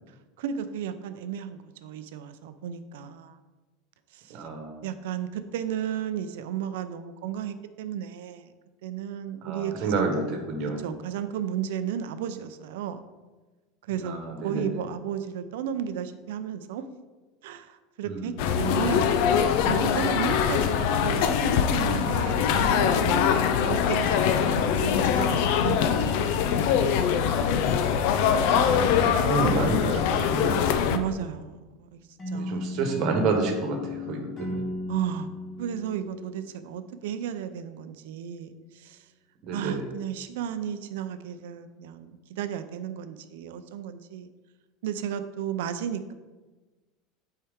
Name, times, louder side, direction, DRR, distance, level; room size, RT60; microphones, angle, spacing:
voice 1, 0.4-3.4 4.1-4.4 4.8-8.5 8.8-10.1 10.8-13.0 13.9-14.1 14.4-16.9 17.4-19.2 19.6-24.6 24.9-25.8 26.5-26.6 30.9-32.6 34.9-35.3 35.6-39.0 39.5-44.3 44.8-46.1, right 9 dB, 90° right, 10 dB, 0.5 m, -34 dB
voice 2, 4.3-4.8 9.4-10.9 14.0-14.7 18.0-18.4 27.2-27.8 28.2-30.8 32.3-34.6 39.4-39.9, right 3 dB, 45° right, 3 dB, 1.2 m, -30 dB
sound 1, 18.4-31.0, left 7 dB, 60° left, 0.5 m, -23 dB
sound 2, 32.2-37.1, left 1 dB, 20° left, 1.1 m, -36 dB
8.5 x 4.5 x 3.6 m, 1.2 s
supercardioid pair, 165°, 0 cm